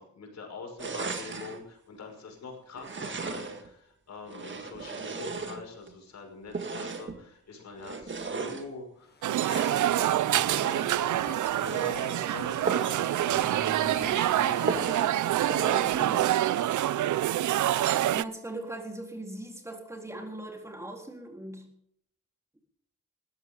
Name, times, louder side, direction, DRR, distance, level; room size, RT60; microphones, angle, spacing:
voice 1, 0.0-10.5 10.9-14.9 15.3-16.2 16.5-16.8, left 3 dB, 65° left, 3 dB, 5.8 m, -44 dB
sound 1, 0.8-1.6 2.8-3.7 4.3-5.9 6.5-7.2 7.8-8.7 9.3-9.9 10.5-11.0 11.5-12.0 12.6-13.0 13.4-13.5 13.9-14.0 14.7-15.2 15.5-16.0, right 4 dB, 40° right, 1.8 m, -35 dB
sound 2, 9.0-15.9, left 4 dB, 35° left, 1.7 m, -46 dB
sound 3, 9.2-18.2, right 13 dB, 85° right, 0.5 m, -26 dB
voice 2, 16.0-16.3 18.1-21.7, right 1 dB, 10° right, 1 dB, 3.8 m, -40 dB
19.0 x 14.5 x 3.8 m, 0.72 s
wide cardioid pair, 130°, 29 cm